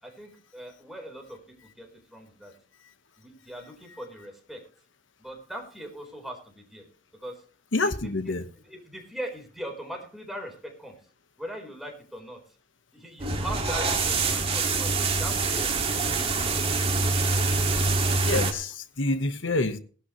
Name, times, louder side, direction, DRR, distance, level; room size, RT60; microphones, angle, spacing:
voice 1, 0.0-2.5 3.2-4.6 5.2-6.9 7.1-7.3 8.0-8.3 8.6-11.0 11.4-12.4 12.9-14.9 15.2-16.6, right 1 dB, ahead, 1 dB, 4.2 m, -40 dB
voice 2, 7.7-8.4 18.2-19.8, left 2 dB, 80° left, 10 dB, 1.3 m, -27 dB
sound 1, 13.2-18.5, right 3 dB, 30° right, 2.1 m, -25 dB
18.5 x 12.0 x 3.1 m, 0.40 s
head